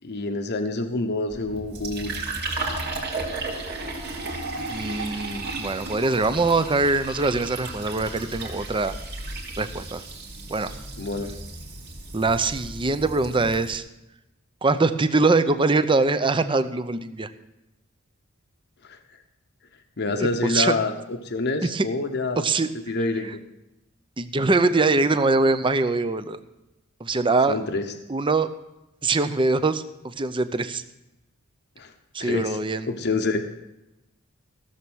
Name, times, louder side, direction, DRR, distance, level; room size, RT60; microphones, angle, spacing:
voice 1, 0.0-2.1 11.0-11.3 18.8-19.0 20.0-22.5 22.9-23.4 27.5-27.9 31.8-31.9 32.2-32.6 32.9-33.4, left 2 dB, 55° left, 6 dB, 0.9 m, -27 dB
Fill (with liquid), 1.3-13.8, right 2 dB, 50° right, 2.7 m, -34 dB
voice 2, 4.7-8.9 9.6-10.0 10.5-10.7 12.1-13.8 14.6-17.3 20.1-20.8 21.6-21.9 22.4-22.7 24.2-26.4 27.0-27.6 28.1-28.5 29.0-30.8 32.1-32.9, right 3 dB, 25° right, 11 dB, 0.6 m, -23 dB
15.5 x 7.1 x 6.2 m, 0.95 s
head